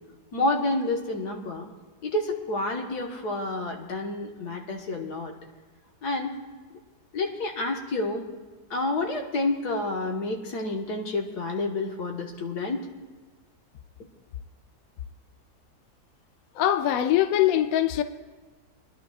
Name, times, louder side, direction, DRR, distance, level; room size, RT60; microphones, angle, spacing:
voice 1, 0.3-1.7 2.0-5.3 6.0-6.3 7.1-8.2 8.7-12.9, left 2 dB, 90° left, 1.9 m, -29 dB
voice 2, 16.5-18.0, left 12 dB, 70° left, 1.0 m, -22 dB
24.0 x 11.0 x 2.4 m
omnidirectional pair, 1.7 m